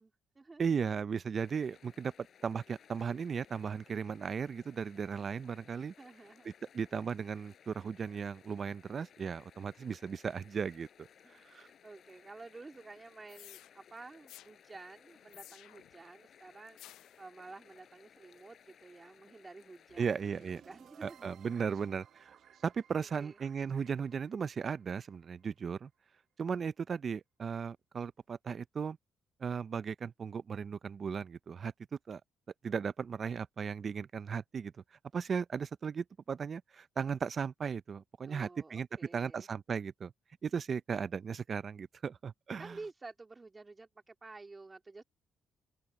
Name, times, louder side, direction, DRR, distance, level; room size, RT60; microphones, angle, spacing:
voice 1, 0.0-1.0 6.0-6.5 11.2-16.8 17.2-21.4 23.0-23.4 38.2-39.5 42.6-45.0, right 3 dB, 25° right, 2.8 m, -51 dB
voice 2, 0.6-2.1 2.4-5.9 6.7-11.1 11.5-11.7 20.0-20.6 21.0-22.3 22.6-25.9 26.4-29.0 29.4-31.7 32.1-32.2 32.6-34.7 35.1-38.9 39.1-40.1 40.4-42.8, right 6 dB, 45° right, 0.5 m, -36 dB
sound 1, 1.4-20.6, left 8 dB, 60° left, 5.4 m, -61 dB
sound 2, 13.3-13.7 14.3-14.5 15.3-15.9 16.8-17.2, left 14 dB, 90° left, 0.4 m, -53 dB
sound 3, 19.9-26.0, right 9 dB, 65° right, 1.1 m, -61 dB
open air
cardioid pair, 90°, 0 cm